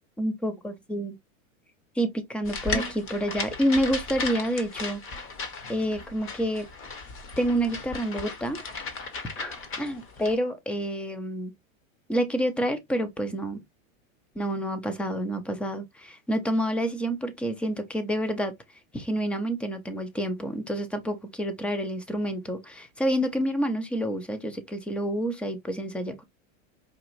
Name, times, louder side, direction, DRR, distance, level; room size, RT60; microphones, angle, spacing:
voice 1, 0.2-1.1 2.0-5.3 5.7-6.7 7.4-8.6 9.4-11.5 12.1-13.6 14.4-18.5 18.9-26.2, equal, 5° left, 0.3 m, -28 dB
sound 1, 2.4-10.3, left 3 dB, 30° left, 1.1 m, -36 dB
4.9 x 2.5 x 2.9 m
supercardioid pair, 125°, 41 cm